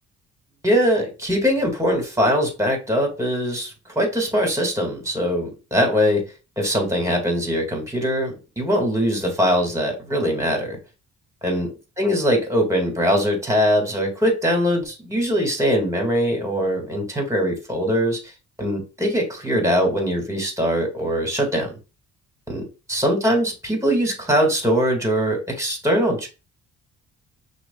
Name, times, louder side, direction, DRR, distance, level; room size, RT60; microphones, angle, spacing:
voice 1, 0.6-6.2 6.6-10.8 11.4-11.7 12.0-18.2 18.6-21.7 22.5-26.3, equal, 10° right, 1.8 m, -22 dB
5.9 x 2.4 x 2.3 m
cardioid pair, 90°, 30 cm